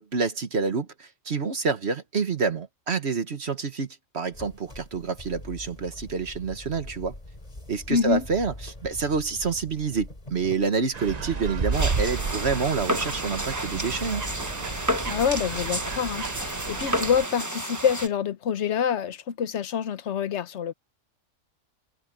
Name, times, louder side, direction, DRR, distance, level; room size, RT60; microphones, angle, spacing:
voice 1, 0.0-3.9 4.1-7.2 7.7-14.3, right 5 dB, 55° right, 1.5 m, -28 dB
sound 1, 4.3-16.4, left 1 dB, 30° left, 3.1 m, -43 dB
voice 2, 7.9-8.2 15.1-20.7, left 7 dB, 60° left, 1.2 m, -26 dB
sound 2, 10.9-17.3, right 4 dB, 35° right, 0.9 m, -32 dB
sound 3, 11.7-18.1, right 1 dB, 15° right, 1.2 m, -31 dB
omnidirectional pair, 1.4 m